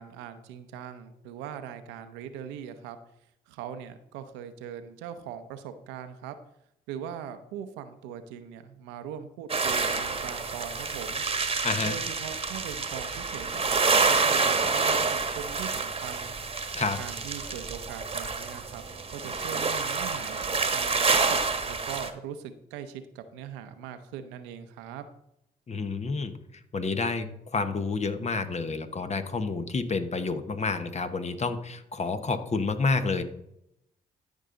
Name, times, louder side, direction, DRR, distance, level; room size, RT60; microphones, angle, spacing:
voice 1, 0.0-3.0 3.5-6.4 6.9-11.2 11.8-16.3 17.0-18.8 19.1-25.1, right 8 dB, 85° right, 9 dB, 0.7 m, -41 dB
sound 1, 9.5-22.1, right 4 dB, 30° right, 1.2 m, -28 dB
voice 2, 11.6-12.0 16.7-17.0 25.7-26.3 26.7-33.2, left 4 dB, 40° left, 9 dB, 1.2 m, -29 dB
13.0 x 5.5 x 3.9 m, 0.80 s
hypercardioid pair, 50°, 18 cm